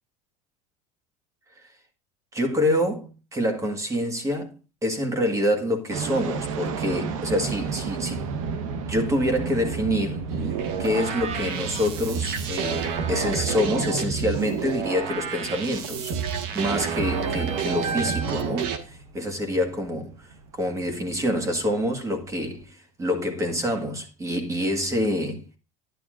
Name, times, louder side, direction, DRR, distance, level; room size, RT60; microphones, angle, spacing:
voice 1, 2.3-8.2 8.8-10.5 10.8-16.1 16.5-25.6, left 1 dB, 20° right, 1.6 m, -27 dB
sound 1, 5.9-22.6, right 5 dB, 90° right, 1.2 m, -35 dB
sound 2, 10.3-18.8, right 6 dB, 65° right, 1.5 m, -29 dB
11.0 x 10.5 x 2.5 m
supercardioid pair, 135°, 17 cm